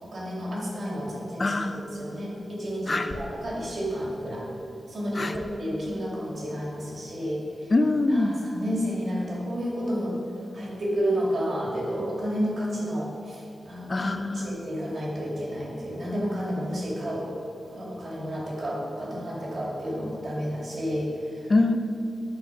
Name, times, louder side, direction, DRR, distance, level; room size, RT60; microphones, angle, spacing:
voice 1, 0.0-4.5 4.9-7.7 8.1-10.1 10.5-17.3 17.7-21.1, equal, 50° right, -4 dB, 2.2 m, -31 dB
voice 2, 1.4-1.7 2.9-3.1 5.1-5.4 7.7-8.3 13.9-14.5 21.5-21.8, left 2 dB, 30° left, 8 dB, 0.4 m, -23 dB
11.0 x 4.2 x 5.9 m, 2.7 s
wide cardioid pair, 165°, 0 cm